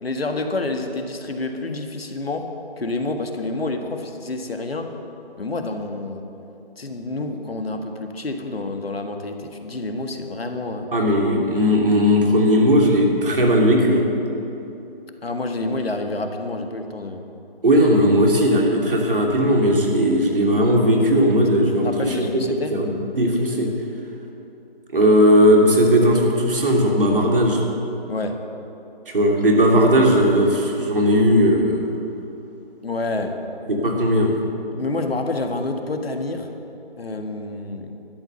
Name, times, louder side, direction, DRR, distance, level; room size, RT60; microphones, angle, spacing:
voice 1, 0.0-4.9 5.4-6.3 6.8-10.9 15.2-17.2 21.8-22.8 28.1-28.4 32.8-33.4 34.7-36.5 37.0-37.9, left 2 dB, 75° left, 5 dB, 1.7 m, -28 dB
voice 2, 10.9-14.1 17.6-22.4 22.7-23.7 24.9-27.6 29.1-31.9 33.7-34.4, equal, 60° right, 0 dB, 2.8 m, -17 dB
12.0 x 11.5 x 6.7 m, 2.9 s
figure-of-eight pair, 160°, 30 cm